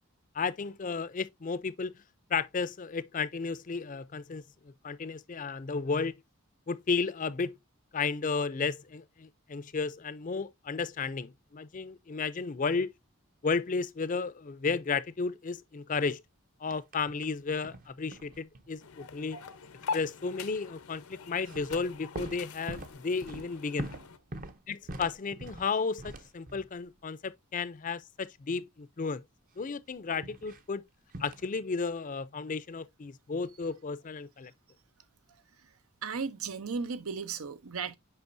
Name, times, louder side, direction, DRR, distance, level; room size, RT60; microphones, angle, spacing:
voice 1, 0.3-1.9 2.3-4.4 4.8-6.2 6.7-7.6 7.9-12.9 13.4-16.2 16.6-19.4 19.9-23.9 24.7-29.2 29.6-30.8 31.2-34.5, left 4 dB, 35° left, 0.5 m, -33 dB
sound 1, 16.7-17.4 17.6-18.8 21.3-26.8 30.2-30.6 31.1-31.5, right 1 dB, 40° right, 0.7 m, -43 dB
sound 2, 18.8-24.2, left 5 dB, 85° left, 0.9 m, -43 dB
voice 2, 36.0-37.9, right 5 dB, 80° right, 0.8 m, -35 dB
8.0 x 5.4 x 2.6 m
head